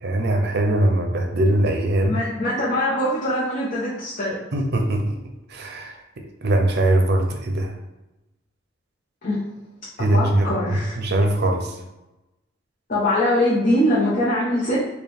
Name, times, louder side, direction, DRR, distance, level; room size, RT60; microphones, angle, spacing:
voice 1, 0.0-2.1 4.5-5.2 5.5-7.7 10.0-10.5 11.0-11.7, right 1 dB, 60° right, 4 dB, 0.6 m, -21 dB
voice 2, 2.1-4.4 9.2-9.4 10.0-11.0 12.9-14.8, left 1 dB, 45° left, -8 dB, 0.9 m, -22 dB
4.4 x 2.3 x 3.4 m, 0.98 s
head